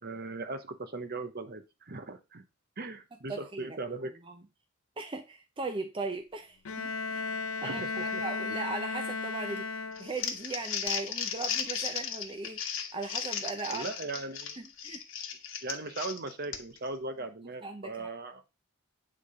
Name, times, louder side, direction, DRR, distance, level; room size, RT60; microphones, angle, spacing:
voice 1, 0.0-2.4 2.8-4.1 7.6-8.2 13.7-14.6 15.6-18.4, right 3 dB, 50° right, 8 dB, 1.0 m, -38 dB
voice 2, 3.3-3.8 4.2-4.3 5.0-7.3 7.6-13.9 14.6-15.0 17.6-18.1, right 3 dB, 25° right, 5 dB, 0.7 m, -38 dB
Bowed string instrument, 6.7-10.4, left 4 dB, 90° left, 0.6 m, -35 dB
Crumpling crinkling, 10.0-16.9, left 7 dB, 65° left, 1.3 m, -35 dB
8.8 x 3.8 x 4.9 m, 0.26 s
head